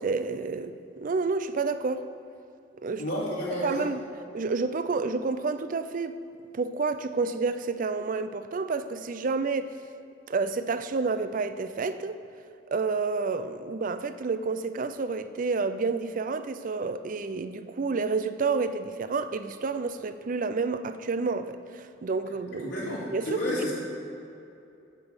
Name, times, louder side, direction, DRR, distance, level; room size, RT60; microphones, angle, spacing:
voice 1, 0.0-2.0 2.8-3.0 3.6-4.0 4.3-6.2 6.5-9.7 10.3-12.2 12.7-22.7 23.1-23.4, right 4 dB, 45° right, 11 dB, 0.5 m, -29 dB
voice 2, 3.0-3.9 22.6-23.7, equal, 80° left, -9 dB, 2.5 m, -31 dB
8.8 x 6.1 x 7.9 m, 2.7 s
head